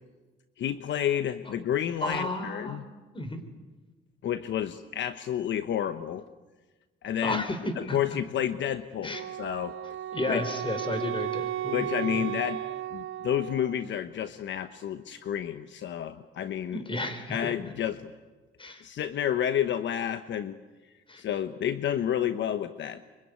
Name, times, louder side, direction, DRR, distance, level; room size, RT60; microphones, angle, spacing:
voice 1, 0.6-2.8 4.2-6.2 7.0-7.4 7.8-9.7 10.3-10.4 11.7-12.6 12.9-16.8 17.3-18.1 18.8-20.6 21.2-23.0, left 10 dB, 65° left, 10 dB, 1.1 m, -30 dB
voice 2, 2.0-2.8 3.1-3.4 7.2-7.6 7.9-8.0 9.0-9.2 10.1-12.3 16.7-17.5 18.6-18.9 21.1-21.2, left 2 dB, 25° left, 9 dB, 4.7 m, -33 dB
Wind instrument woodwind instrument, 9.1-13.9, right 13 dB, 80° right, 1.1 m, -35 dB
24.5 x 24.5 x 9.6 m, 1.3 s
cardioid pair, 90°, 20 cm